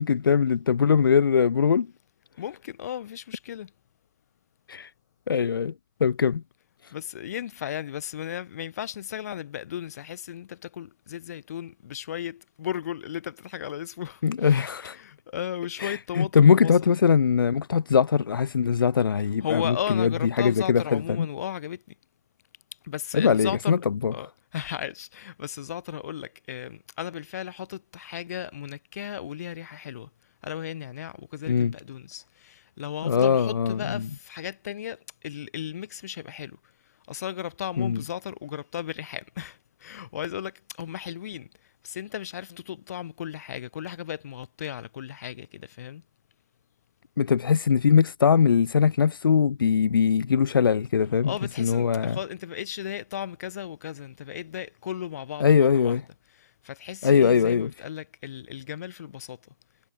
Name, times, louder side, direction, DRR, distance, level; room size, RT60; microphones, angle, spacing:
voice 1, 0.0-1.9 4.7-4.9 5.3-5.7 6.0-6.4 14.2-15.0 15.8-20.1 20.4-21.3 23.1-24.1 31.5-31.7 33.0-34.1 37.8-38.0 47.2-51.3 51.6-52.2 55.4-56.0 57.0-57.7, left 6 dB, 85° left, 0.4 m, -21 dB
voice 2, 2.4-3.7 6.9-16.8 19.4-21.9 22.8-23.8 24.1-30.1 30.4-36.6 37.1-41.5 41.8-46.0 51.2-56.0 56.4-59.4, left 10 dB, 50° left, 1.0 m, -35 dB
hypercardioid pair, 150°, 11 cm